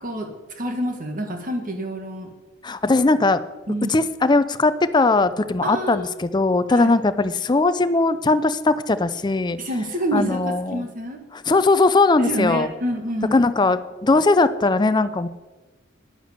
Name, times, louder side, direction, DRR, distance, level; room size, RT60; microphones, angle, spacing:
voice 1, 0.0-2.3 3.7-3.9 5.6-6.1 6.7-6.9 9.6-11.2 12.2-13.4, right 1 dB, 45° right, 4 dB, 1.8 m, -27 dB
voice 2, 2.6-3.4 3.9-9.6 10.1-10.9 11.3-12.7 13.3-15.3, left 3 dB, 20° left, 12 dB, 0.5 m, -19 dB
10.0 x 9.7 x 6.7 m, 1.2 s
head